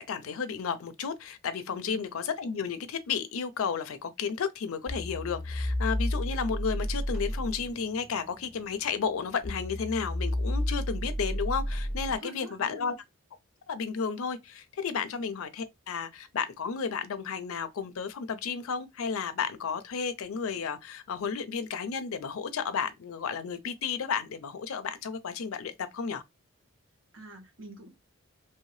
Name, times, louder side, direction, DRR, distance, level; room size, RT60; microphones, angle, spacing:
voice 1, 0.0-13.0 13.7-26.2, left 6 dB, 85° left, 0.4 m, -33 dB
sound 1, 4.9-12.2, left 1 dB, 5° right, 0.9 m, -32 dB
voice 2, 12.1-12.9 15.0-15.2 27.1-27.9, right 1 dB, 75° right, 1.4 m, -46 dB
3.1 x 2.7 x 3.1 m
head